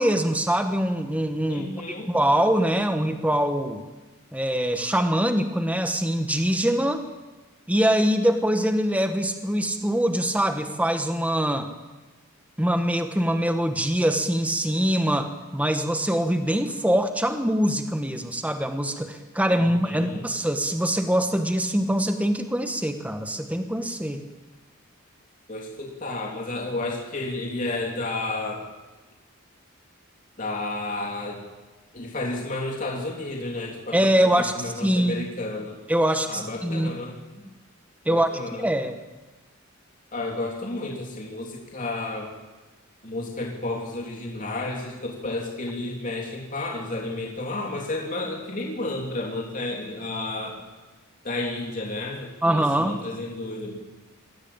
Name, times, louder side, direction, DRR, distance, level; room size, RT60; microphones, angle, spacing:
voice 1, 0.0-1.7 2.1-3.8 4.3-7.0 7.7-11.7 12.6-24.2 33.9-35.2 35.9-36.9 38.0-38.3 38.6-39.0 52.4-53.0, right 1 dB, 5° right, 7 dB, 1.3 m, -23 dB
voice 2, 1.5-2.1 19.6-20.2 25.5-28.7 30.4-31.4 31.9-35.8 36.2-37.1 38.1-38.7 40.1-42.3 43.0-50.6 51.2-53.8, left 2 dB, 35° left, -1 dB, 3.3 m, -32 dB
22.0 x 16.0 x 8.7 m, 1.2 s
head